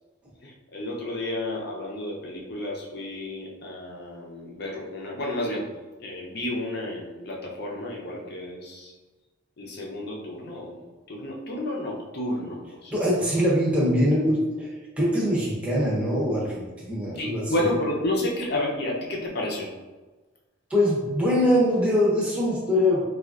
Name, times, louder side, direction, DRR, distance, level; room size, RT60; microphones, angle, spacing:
voice 1, 0.4-5.6 6.0-8.9 9.6-10.8 11.1-13.0 17.2-19.7, left 1 dB, 55° left, -2 dB, 0.6 m, -31 dB
voice 2, 12.9-14.7 15.0-17.5 20.7-23.0, left 1 dB, 5° right, -6 dB, 0.7 m, -23 dB
4.3 x 2.4 x 2.4 m, 1.2 s
head